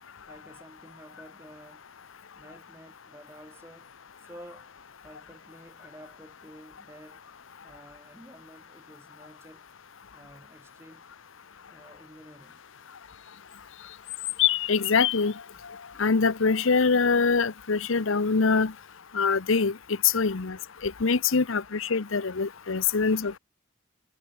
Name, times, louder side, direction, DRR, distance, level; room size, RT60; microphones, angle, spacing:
voice 1, 0.3-1.8 2.3-3.9 4.2-4.7 5.0-7.2 7.6-9.6 10.1-11.0 11.7-12.6, right 1 dB, 10° right, 4.4 m, -51 dB
sound 1, 13.5-15.4, left 17 dB, 65° left, 0.5 m, -28 dB
voice 2, 14.7-15.3 16.0-18.7 19.1-19.8 20.0-20.6 20.8-23.4, left 4 dB, 85° left, 0.9 m, -24 dB
head